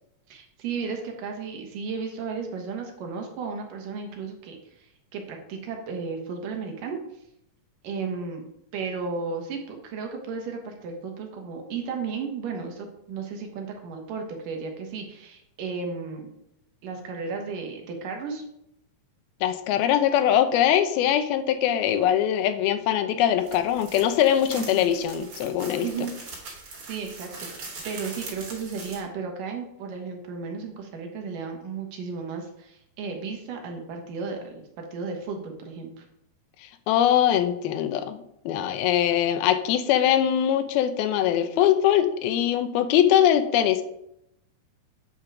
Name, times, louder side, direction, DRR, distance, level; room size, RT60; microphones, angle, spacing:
voice 1, 0.3-7.0 7.8-8.4 8.7-16.3 16.8-18.4 24.6-24.9 25.8-26.2 26.9-36.1, right 5 dB, 70° right, 3 dB, 2.6 m, -34 dB
voice 2, 19.4-25.9 36.9-43.8, left 10 dB, 85° left, 9 dB, 2.6 m, -22 dB
sound 1, 23.4-29.0, right 3 dB, 40° right, 2.9 m, -41 dB
8.7 x 5.2 x 6.0 m, 0.79 s
omnidirectional pair, 4.3 m